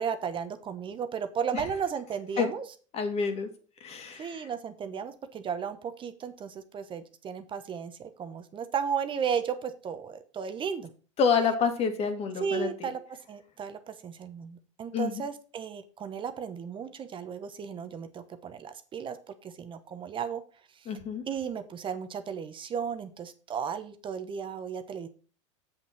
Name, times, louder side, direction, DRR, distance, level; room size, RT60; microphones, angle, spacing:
voice 1, 0.0-2.6 4.2-10.9 12.4-20.4 20.7-20.9 21.3-25.1, right 7 dB, 30° right, 9 dB, 1.0 m, -34 dB
voice 2, 2.9-3.5 3.8-4.5 11.2-12.9 14.9-15.1 20.9-21.2, left 5 dB, 40° left, 7 dB, 2.2 m, -28 dB
7.9 x 7.3 x 4.4 m, 0.38 s
hypercardioid pair, 105°, 16 cm